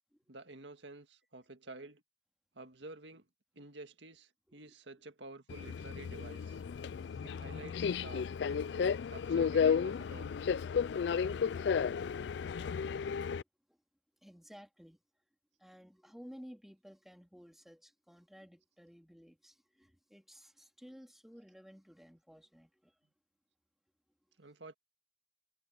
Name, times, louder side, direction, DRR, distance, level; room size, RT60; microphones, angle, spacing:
voice 1, 0.3-2.0 2.6-3.3 3.6-6.6 7.2-8.2 9.1-10.3 24.4-24.7, right 2 dB, 90° right, 1.8 m, -50 dB
Subway metro underground, 5.5-13.4, left 6 dB, 70° left, 0.4 m, -33 dB
voice 2, 6.7-7.4 8.6-9.1 10.6-11.1 14.2-15.0 15.6-22.9, equal, ahead, 2.9 m, -56 dB
head